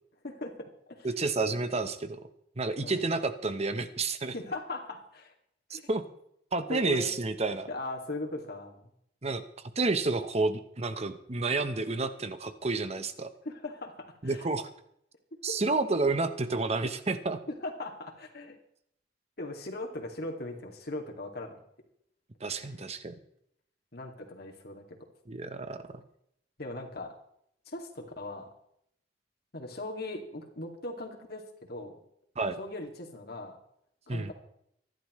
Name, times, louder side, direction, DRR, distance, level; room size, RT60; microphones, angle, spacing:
voice 1, 0.2-1.1 2.8-3.0 4.3-5.3 5.7-5.8 6.7-7.1 7.7-8.9 13.4-14.5 15.5-15.8 17.5-18.6 19.4-21.6 22.6-22.7 23.9-25.0 26.6-27.2 27.7-28.5 29.5-32.0 32.6-33.6 34.1-34.3, left 2 dB, 60° left, 2 dB, 2.4 m, -39 dB
voice 2, 1.0-2.2 2.6-4.3 5.7-6.0 6.5-7.7 9.2-9.4 9.8-13.3 14.2-14.7 15.4-17.4 22.4-23.1 25.3-26.0 32.4-32.6 34.1-34.3, right 3 dB, 35° right, 10 dB, 1.0 m, -30 dB
25.0 x 12.0 x 3.2 m, 0.73 s
head